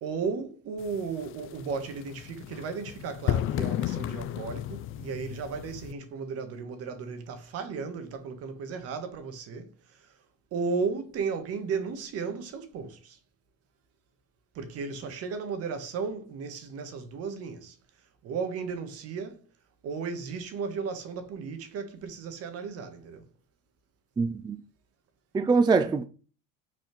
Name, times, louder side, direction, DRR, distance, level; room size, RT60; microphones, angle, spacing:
voice 1, 0.0-10.3 10.5-13.2 14.5-19.5 19.8-23.3, right 5 dB, 55° right, 1.7 m, -35 dB
sound 1, 0.8-5.9, left 13 dB, 45° left, 0.5 m, -33 dB
voice 2, 24.2-24.6 25.3-26.0, right 4 dB, 15° right, 0.4 m, -23 dB
6.2 x 4.2 x 6.1 m
cardioid pair, 120°, 30 cm